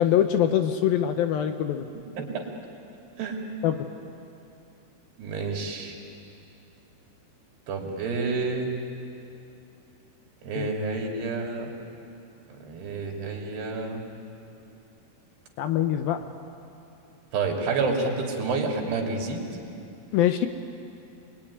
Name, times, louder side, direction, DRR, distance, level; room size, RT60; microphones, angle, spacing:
voice 1, 0.0-1.9 3.6-3.9 10.6-10.7 15.6-16.2 20.1-20.5, left 10 dB, 75° left, 7 dB, 2.4 m, -23 dB
voice 2, 2.2-2.5 3.2-3.4 5.2-6.0 7.7-8.7 10.4-11.7 12.6-14.0 17.3-19.5, right 4 dB, 75° right, 1 dB, 5.1 m, -29 dB
28.0 x 21.0 x 10.0 m, 2.7 s
omnidirectional pair, 4.8 m